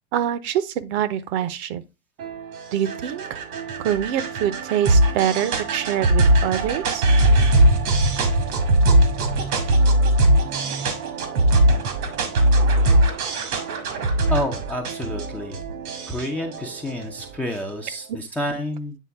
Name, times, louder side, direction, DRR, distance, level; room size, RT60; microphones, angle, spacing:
voice 1, 0.1-1.8 2.7-3.4 3.8-7.1, right 10 dB, 50° right, 0.7 m, -25 dB
sound 1, 2.2-17.7, right 1 dB, 80° right, 1.8 m, -21 dB
voice 2, 14.3-15.6 16.1-19.0, equal, 5° left, 0.4 m, -29 dB
8.4 x 3.6 x 3.4 m
hypercardioid pair, 120°, 44 cm